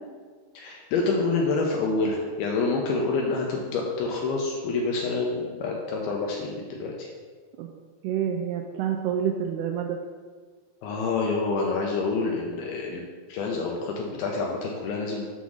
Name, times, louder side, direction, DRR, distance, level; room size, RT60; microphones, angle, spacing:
voice 1, 0.5-7.1 10.8-13.0 13.3-15.3, left 3 dB, 80° left, 0 dB, 2.3 m, -27 dB
voice 2, 8.0-10.0, right 9 dB, 85° right, 2 dB, 2.4 m, -28 dB
7.1 x 3.9 x 6.2 m, 1.5 s
omnidirectional pair, 5.0 m